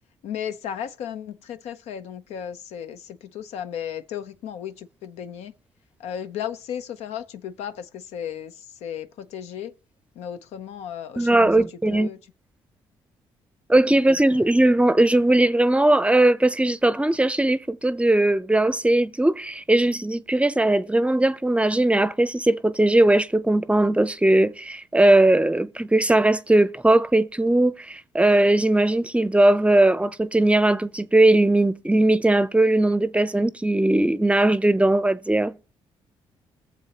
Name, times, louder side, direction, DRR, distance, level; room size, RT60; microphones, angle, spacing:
voice 1, 0.2-5.5 6.0-9.7 10.2-12.2 13.9-14.5, left 9 dB, 80° left, 0.6 m, -35 dB
voice 2, 11.2-12.1 13.7-35.5, right 1 dB, 10° right, 0.6 m, -19 dB
21.0 x 7.1 x 2.9 m
supercardioid pair, 65°, 11 cm